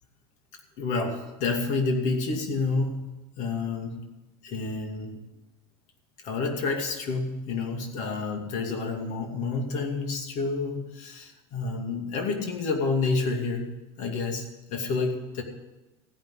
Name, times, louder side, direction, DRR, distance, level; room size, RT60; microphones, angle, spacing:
voice 1, 0.8-3.1 3.4-4.0 4.4-5.2 6.2-13.7 14.0-14.4 14.7-15.4, left 3 dB, 60° left, 3 dB, 2.5 m, -29 dB
15.5 x 5.7 x 9.9 m, 1.0 s
supercardioid pair, 100°, 13 cm